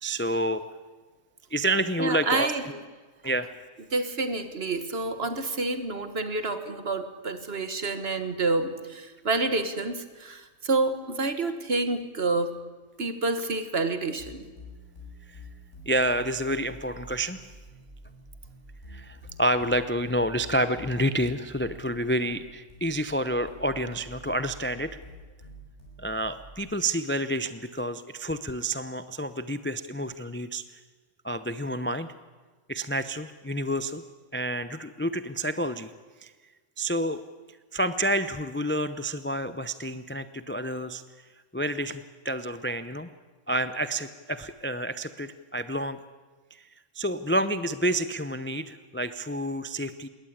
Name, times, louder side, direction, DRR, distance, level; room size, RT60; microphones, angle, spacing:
voice 1, 0.0-0.6 1.5-2.8 3.2-3.5 15.3-15.4 15.9-17.4 18.9-25.0 26.0-30.8 31.2-32.1 32.7-34.0 34.3-35.9 36.2-36.3 36.8-37.2 37.7-41.0 41.5-43.1 43.5-46.0 46.5-46.7 46.9-50.1, right 1 dB, 15° left, 12 dB, 0.4 m, -29 dB
voice 2, 2.0-2.6 3.9-12.6 13.0-14.4, right 3 dB, 50° right, 10 dB, 1.7 m, -28 dB
sound 1, 14.2-26.6, equal, 55° left, 8.1 m, -47 dB
21.0 x 18.0 x 8.7 m, 1.4 s
omnidirectional pair, 1.4 m